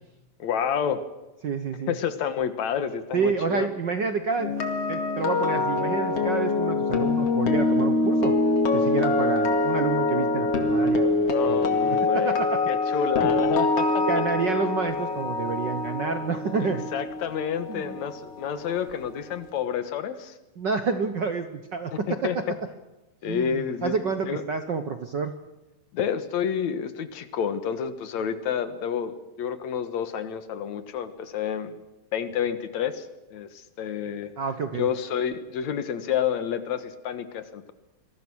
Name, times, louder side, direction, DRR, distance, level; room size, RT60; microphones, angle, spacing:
voice 1, 0.4-1.0 1.9-3.7 11.3-12.4 12.7-14.1 16.6-20.3 22.1-22.4 23.2-23.9 24.3-24.4 25.9-31.8 32.1-33.1 33.3-34.3 34.7-37.7, left 8 dB, 70° left, 11 dB, 2.7 m, -29 dB
voice 2, 1.4-1.9 3.1-4.5 4.9-8.3 8.7-12.6 12.9-13.1 14.1-16.9 17.7-18.0 20.6-22.4 23.3-25.3 34.4-34.9, right 5 dB, 55° right, 8 dB, 1.3 m, -29 dB
sound 1, 4.4-18.4 18.7-19.0, left 3 dB, 55° left, 3.1 m, -24 dB
27.5 x 21.5 x 6.3 m, 0.98 s
omnidirectional pair, 3.3 m